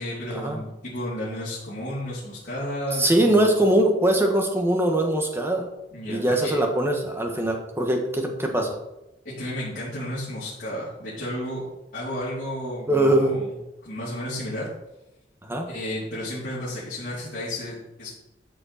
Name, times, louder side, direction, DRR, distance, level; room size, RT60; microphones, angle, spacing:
voice 1, 0.0-3.5 5.9-6.6 9.2-11.6 11.9-13.5 13.8-14.7 15.7-18.1, left 1 dB, 50° left, -11 dB, 3.6 m, -32 dB
voice 2, 2.9-5.6 6.1-8.7 12.9-13.4 15.4-15.7, right 1 dB, 15° right, 2 dB, 1.6 m, -22 dB
13.0 x 6.6 x 4.4 m, 0.92 s
head